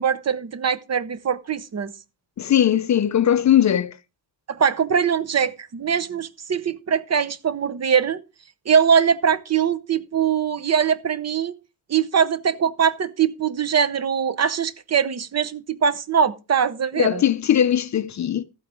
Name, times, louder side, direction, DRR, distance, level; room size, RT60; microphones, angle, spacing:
voice 1, 0.0-1.9 4.5-8.2 8.7-11.5 11.9-17.2, right 7 dB, 40° right, 0.7 m, -22 dB
voice 2, 2.4-4.0 17.0-18.4, left 10 dB, 45° left, 0.5 m, -19 dB
13.5 x 8.7 x 3.6 m
wide cardioid pair, 170°, 40 cm